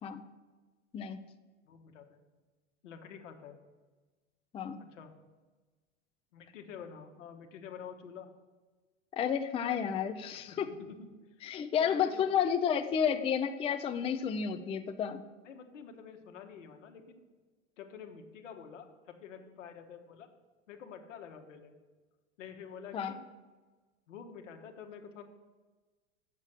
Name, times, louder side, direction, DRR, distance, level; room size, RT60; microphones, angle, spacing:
voice 1, 1.6-2.2 2.8-3.6 4.8-5.1 6.3-8.3 10.5-11.5 11.8-12.2 15.4-17.2 17.8-20.3 20.7-21.8 22.4-23.2 24.1-25.2, left 7 dB, 80° left, 5 dB, 1.2 m, -48 dB
voice 2, 9.2-10.7 11.4-15.2 22.9-23.2, left 8 dB, 15° left, 8 dB, 0.4 m, -31 dB
6.7 x 6.3 x 7.5 m, 1.3 s
hypercardioid pair, 95°, 37 cm